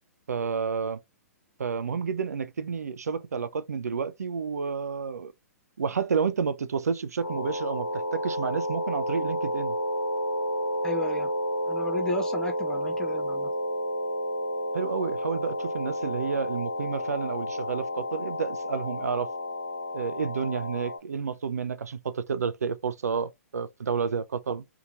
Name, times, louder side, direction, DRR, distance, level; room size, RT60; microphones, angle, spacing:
voice 1, 0.3-1.0 1.6-5.3 5.8-9.8 14.7-19.3 19.9-24.6, right 6 dB, 75° right, 0.4 m, -30 dB
sound 1, 7.2-21.0, equal, 65° left, 0.8 m, -31 dB
voice 2, 10.8-11.3 11.7-13.5, left 1 dB, 10° left, 0.5 m, -33 dB
2.8 x 2.5 x 2.5 m
figure-of-eight pair, 125°, 9 cm